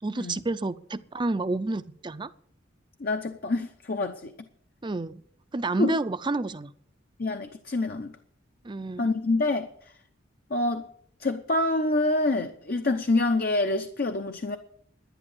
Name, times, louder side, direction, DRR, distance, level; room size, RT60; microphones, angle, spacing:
voice 1, 0.0-2.3 4.8-5.2 5.5-6.7 8.6-9.1, right 2 dB, 25° right, 0.5 m, -29 dB
voice 2, 3.0-4.3 5.8-6.0 7.2-8.2 9.0-9.7 10.5-10.9 11.2-14.6, left 2 dB, 50° left, 0.8 m, -26 dB
11.0 x 10.5 x 7.3 m
head